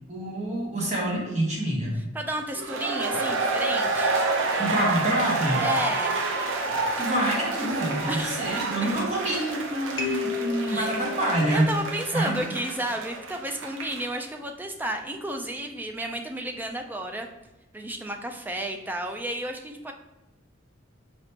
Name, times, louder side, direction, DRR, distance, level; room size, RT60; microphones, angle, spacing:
voice 1, 0.1-2.0 4.6-5.6 7.0-11.7 12.1-12.4, right 1 dB, 35° right, -3 dB, 1.0 m, -27 dB
voice 2, 2.1-4.2 5.6-6.2 8.0-8.5 10.7-10.9 11.5-17.3 17.7-19.9, right 1 dB, 10° right, 4 dB, 0.3 m, -32 dB
sound 1, 2.5-14.2, right 3 dB, 75° right, 0.7 m, -29 dB
sound 2, 8.1-9.5 10.0-12.6, left 7 dB, 75° left, 0.8 m, -36 dB
4.8 x 3.5 x 2.8 m, 1.0 s
head